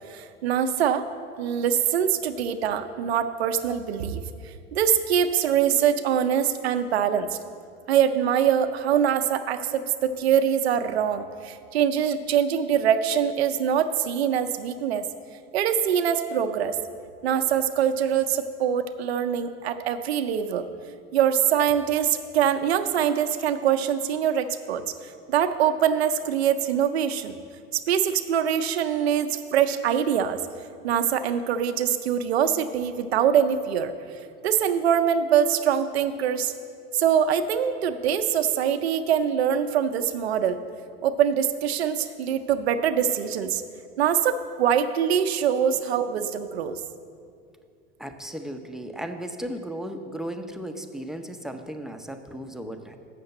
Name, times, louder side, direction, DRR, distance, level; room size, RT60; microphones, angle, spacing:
voice 1, 0.1-1.1 1.4-7.4 7.9-15.1 15.5-16.8 17.2-20.7 21.1-27.4 27.7-30.4 30.8-33.9 34.4-36.5 36.9-40.6 41.0-43.6 44.0-46.8, right 8 dB, 90° right, 9 dB, 0.6 m, -24 dB
voice 2, 48.0-53.0, right 1 dB, ahead, 6 dB, 0.6 m, -35 dB
7.0 x 6.6 x 7.7 m, 2.3 s
hypercardioid pair, 85°, 31 cm